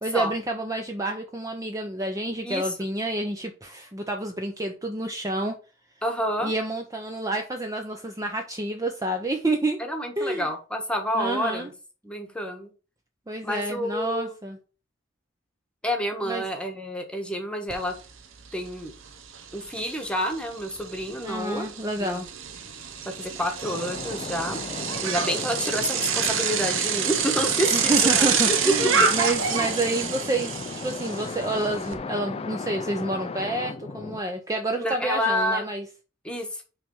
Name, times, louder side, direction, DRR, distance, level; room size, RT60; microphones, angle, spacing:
voice 1, 0.0-5.5 6.4-9.8 10.2-10.5 11.1-11.7 13.3-14.6 16.2-16.4 21.2-22.3 27.7-35.8, right 2 dB, 15° right, 3 dB, 0.6 m, -29 dB
voice 2, 6.0-6.5 9.8-11.7 12.0-12.7 13.4-14.3 15.8-18.0 18.5-18.9 19.5-21.7 22.0-22.2 23.0-24.6 25.0-28.6 34.8-35.7 36.2-36.6, equal, 5° left, 4 dB, 1.2 m, -29 dB
Bicycle, 17.7-17.8 18.2-31.9, right 7 dB, 75° right, 1.0 m, -27 dB
sound 1, 23.6-34.2, left 3 dB, 30° left, 0.4 m, -36 dB
5.8 x 3.4 x 5.3 m, 0.34 s
head